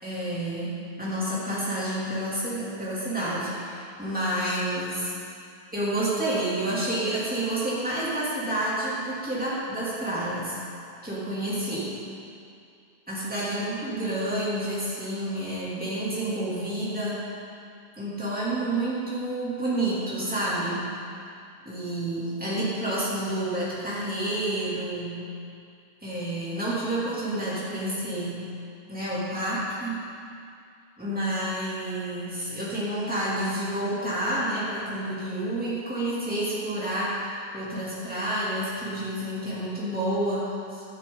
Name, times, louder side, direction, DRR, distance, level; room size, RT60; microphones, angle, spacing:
voice 1, 0.0-5.1 5.7-10.6 11.0-11.9 13.1-17.2 18.0-20.9 21.6-25.2 26.0-28.5 28.9-30.1 31.0-40.8, right 1 dB, 10° right, -9 dB, 3.0 m, -29 dB
12.5 x 12.0 x 4.0 m, 2.4 s
omnidirectional pair, 1.1 m